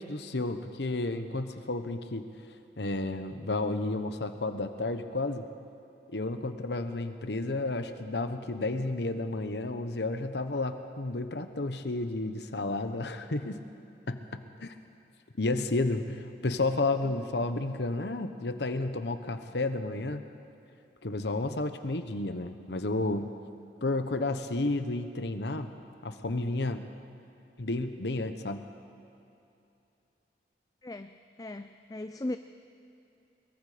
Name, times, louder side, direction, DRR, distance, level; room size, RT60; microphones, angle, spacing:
voice 1, 0.0-2.3 2.8-5.5 6.1-13.6 14.1-14.2 14.6-14.7 15.4-20.3 21.0-23.3 23.8-25.7 26.0-26.8 27.6-28.7, left 2 dB, 75° left, 8 dB, 1.0 m, -31 dB
voice 2, 30.8-31.1 31.4-32.4, left 1 dB, 20° left, 9 dB, 0.4 m, -37 dB
23.0 x 22.5 x 5.1 m, 2.7 s
head